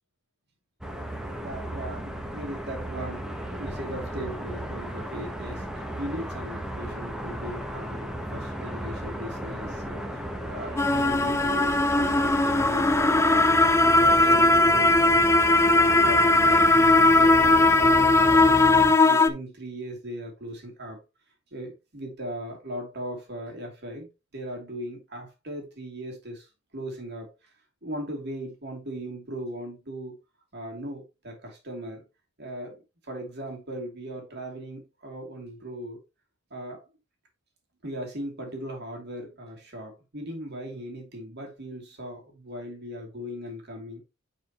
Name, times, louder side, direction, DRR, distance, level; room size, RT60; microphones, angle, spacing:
sound 1, 0.8-19.0, equal, 5° right, 1.0 m, -35 dB
voice 1, 1.4-5.7 6.0-13.5 13.8-16.8 17.1-18.6 19.0-21.0 21.5-27.3 27.8-30.2 30.5-32.0 32.4-36.0 36.5-36.8 37.8-44.0, equal, 50° right, 2.7 m, -38 dB
sound 2, 10.8-19.3, left 2 dB, 15° left, 0.5 m, -19 dB
10.0 x 5.0 x 3.0 m
head